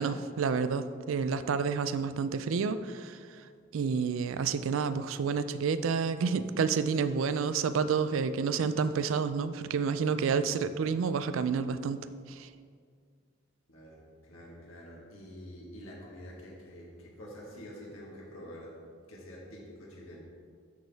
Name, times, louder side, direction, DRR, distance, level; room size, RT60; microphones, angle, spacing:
voice 1, 0.0-3.2 3.7-12.0 12.3-12.5, right 5 dB, 85° right, 12 dB, 0.4 m, -29 dB
voice 2, 13.7-18.8 19.1-20.2, equal, 90° left, -4 dB, 1.5 m, -47 dB
12.5 x 4.4 x 3.4 m, 2.1 s
head